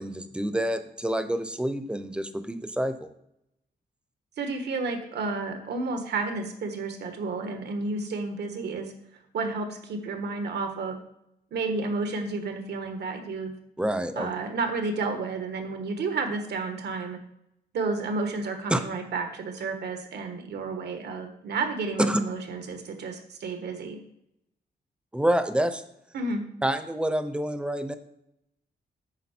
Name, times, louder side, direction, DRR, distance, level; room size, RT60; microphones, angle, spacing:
voice 1, 0.0-3.1 13.8-14.3 18.7-18.8 22.1-22.2 25.1-25.8 26.6-27.9, right 1 dB, 5° right, 10 dB, 0.6 m, -27 dB
voice 2, 4.4-8.9 9.3-11.0 11.5-13.5 14.2-17.2 17.7-24.0 26.1-26.4, right 3 dB, 90° right, 6 dB, 1.3 m, -31 dB
9.5 x 6.5 x 4.4 m, 0.79 s
wide cardioid pair, 160°, 17 cm